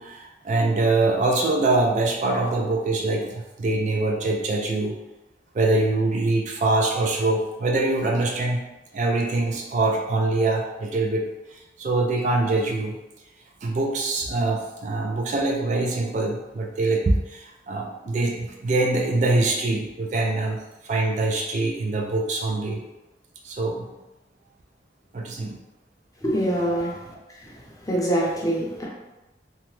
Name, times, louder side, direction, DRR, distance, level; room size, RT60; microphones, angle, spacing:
voice 1, 0.0-4.9 5.5-8.6 8.9-11.2 11.8-12.9 13.6-20.6 20.8-22.8 23.4-23.9 25.1-25.6, right 2 dB, 45° right, 1 dB, 0.3 m, -24 dB
voice 2, 26.2-26.9 27.4-27.5 27.8-28.9, right 1 dB, 20° left, -4 dB, 0.6 m, -24 dB
2.8 x 2.1 x 3.0 m, 1.0 s
head